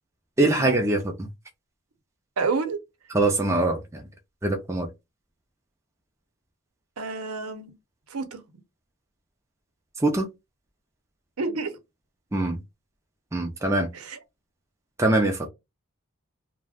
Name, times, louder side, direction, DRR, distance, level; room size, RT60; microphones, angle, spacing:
voice 1, 0.4-1.3 3.1-4.1 4.4-4.9 10.0-10.3 12.3-12.6 13.3-13.9 15.0-15.5, right 2 dB, 15° right, 0.4 m, -23 dB
voice 2, 2.4-2.8 7.0-7.7 8.1-8.4 11.4-11.8 13.9-14.2, right 4 dB, 80° right, 0.7 m, -29 dB
2.3 x 2.1 x 3.4 m
head